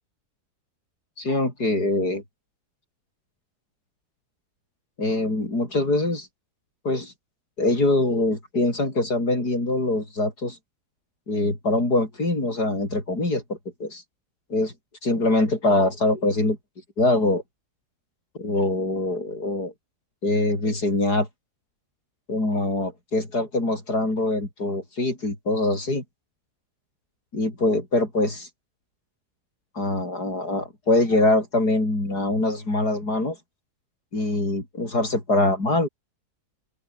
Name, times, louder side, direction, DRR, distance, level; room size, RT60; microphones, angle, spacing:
voice 1, 1.2-2.2 5.0-6.3 6.8-7.1 7.6-10.6 11.3-14.0 14.5-14.7 15.0-16.6 17.0-17.4 18.4-19.7 20.2-21.3 22.3-26.0 27.3-28.5 29.8-33.4 34.1-35.9, left 2 dB, 75° left, 7.2 m, -23 dB
open air
omnidirectional pair, 1.7 m